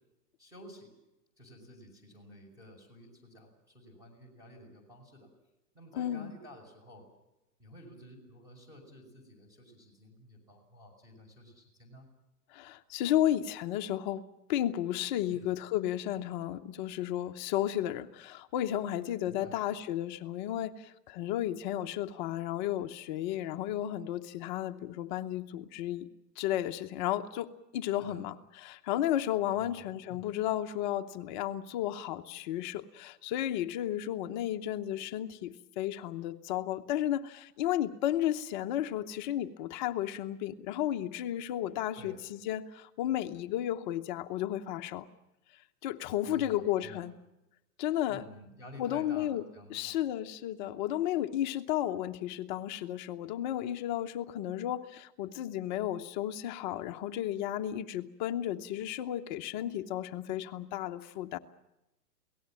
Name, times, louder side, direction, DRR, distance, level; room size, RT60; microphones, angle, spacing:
voice 1, 0.4-0.9 1.4-5.3 5.7-7.0 7.6-12.1 15.3-15.5 19.3-19.6 28.0-28.3 29.5-30.3 41.9-42.2 46.2-47.1 48.1-50.0, left 1 dB, 5° right, 3 dB, 5.7 m, -52 dB
voice 2, 6.0-6.3 12.5-14.2 14.5-26.1 26.4-28.3 28.6-45.1 45.8-47.1 47.8-48.2 48.8-49.4 49.7-61.4, left 12 dB, 30° left, 8 dB, 0.9 m, -33 dB
28.5 x 18.5 x 7.5 m, 0.94 s
hypercardioid pair, 155°, 48 cm